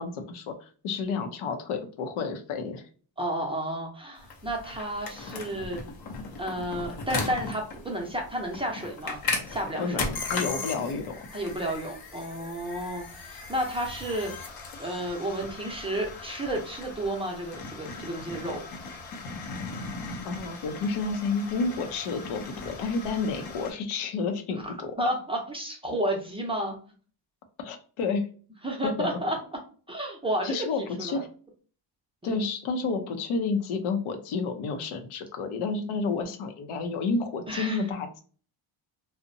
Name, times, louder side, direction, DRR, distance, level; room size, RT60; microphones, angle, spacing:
voice 1, 0.0-2.8 9.8-11.2 20.2-24.9 27.6-28.3 28.8-29.1 30.4-31.3 32.2-38.2, left 4 dB, 90° left, 6 dB, 0.7 m, -30 dB
voice 2, 3.2-5.8 6.4-9.2 9.5-10.0 11.3-14.5 14.8-18.6 24.6-24.7 25.0-26.8 28.6-29.4 29.9-31.2 32.2-32.4 37.5-37.8, right 1 dB, 10° right, 0 dB, 0.5 m, -32 dB
sound 1, 4.2-23.7, left 4 dB, 50° left, 0.7 m, -37 dB
2.7 x 2.1 x 2.5 m, 0.41 s
cardioid pair, 130°, 48 cm